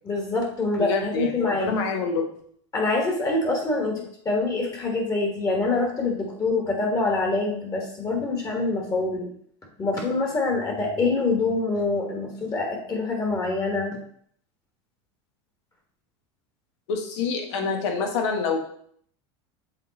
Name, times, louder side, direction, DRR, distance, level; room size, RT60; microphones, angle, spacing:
voice 1, 0.0-1.7 2.7-9.3 9.8-14.0, left 3 dB, 25° left, 1 dB, 1.5 m, -25 dB
voice 2, 0.8-2.3 16.9-18.6, left 5 dB, 80° left, 3 dB, 1.4 m, -26 dB
7.4 x 3.6 x 4.0 m, 0.63 s
supercardioid pair, 130°, 15 cm